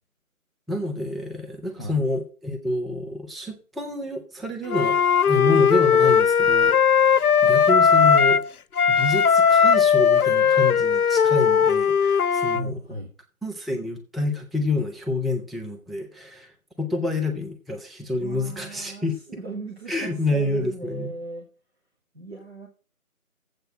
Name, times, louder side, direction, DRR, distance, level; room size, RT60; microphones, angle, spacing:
voice 1, 0.7-5.0 5.3-8.4 8.9-12.8 13.4-16.5 16.8-19.1 19.9-21.1, left 2 dB, ahead, 2 dB, 0.6 m, -28 dB
Wind instrument woodwind instrument, 4.7-8.5 8.8-12.6, left 7 dB, 75° left, 0.6 m, -18 dB
voice 2, 12.5-13.1 18.2-21.5 22.1-22.7, right 2 dB, 45° right, 1 dB, 1.7 m, -37 dB
7.9 x 5.9 x 7.4 m, 0.37 s
figure-of-eight pair, 175°, 44 cm